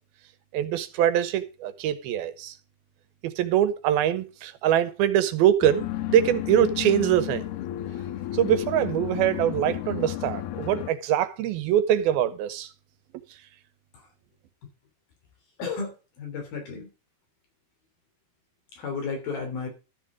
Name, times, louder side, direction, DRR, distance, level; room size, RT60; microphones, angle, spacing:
voice 1, 0.5-2.5 3.2-7.4 8.3-12.7, right 10 dB, 80° right, 2.9 m, -23 dB
sound 1, 5.6-10.9, left 13 dB, 85° left, 2.8 m, -32 dB
voice 2, 15.6-16.9 18.7-19.7, left 4 dB, 70° left, 5.0 m, -33 dB
13.0 x 6.4 x 5.0 m
omnidirectional pair, 4.4 m